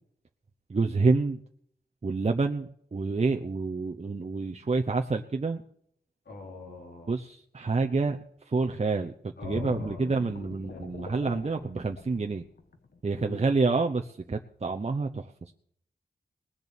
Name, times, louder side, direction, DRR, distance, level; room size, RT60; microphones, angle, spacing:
voice 1, 0.7-1.4 2.0-5.6 7.1-8.2 8.5-12.4 13.0-15.5, right 3 dB, 40° right, 3 dB, 0.9 m, -28 dB
voice 2, 6.3-7.1 9.4-10.8 13.2-13.4, left 3 dB, 85° left, 0 dB, 3.8 m, -44 dB
sound 1, 9.4-13.0 13.4-13.6, left 4 dB, 60° left, 1.6 m, -42 dB
20.0 x 6.9 x 8.3 m, 0.66 s
wide cardioid pair, 70°, 17 cm